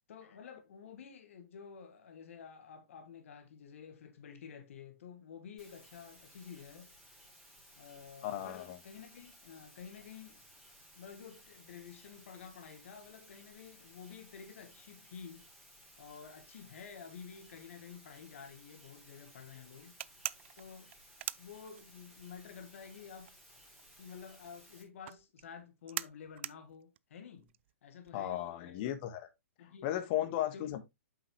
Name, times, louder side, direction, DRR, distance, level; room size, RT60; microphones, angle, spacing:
voice 1, 0.1-6.9 7.8-10.4 11.0-15.5 16.0-20.0 20.6-20.9 21.4-23.3 24.0-27.5 27.8-28.9 29.6-29.9 30.2-30.8, left 6 dB, 65° left, 1.6 m, -51 dB
sound 1, 5.6-24.8, equal, ahead, 3.2 m, -59 dB
voice 2, 8.2-8.8 28.1-29.3 29.8-30.9, left 12 dB, 40° left, 1.4 m, -35 dB
sound 2, 20.0-22.2 22.5-28.3, right 13 dB, 55° right, 0.4 m, -43 dB
8.2 x 5.7 x 3.1 m
hypercardioid pair, 125°, 8 cm